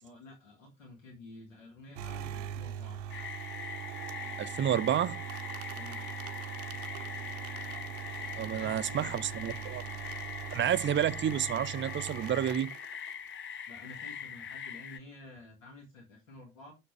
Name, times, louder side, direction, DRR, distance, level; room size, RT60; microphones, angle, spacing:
voice 1, 0.0-3.0 5.7-6.1 8.4-9.7 13.7-16.7, left 2 dB, 80° left, 2.2 m, -51 dB
sound 1, 1.9-13.3, right 10 dB, 70° right, 0.8 m, -41 dB
sound 2, 3.1-15.0, left 7 dB, 30° left, 0.6 m, -42 dB
voice 2, 4.4-5.2 8.4-9.8 10.5-12.7, right 10 dB, 30° right, 0.5 m, -30 dB
7.0 x 6.5 x 3.3 m
figure-of-eight pair, 45°, 38 cm